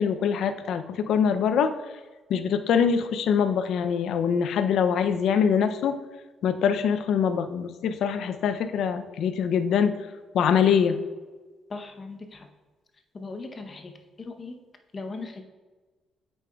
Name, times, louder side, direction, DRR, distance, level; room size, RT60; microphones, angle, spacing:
voice 1, 0.0-1.7 2.3-6.0 6.4-10.0 10.3-11.0, left 7 dB, 75° left, 9 dB, 0.4 m, -24 dB
voice 2, 11.7-12.5 13.1-14.6 14.9-15.4, left 3 dB, 35° left, 4 dB, 0.7 m, -38 dB
8.1 x 5.3 x 2.3 m, 1.3 s
cardioid pair, 90°, 0 cm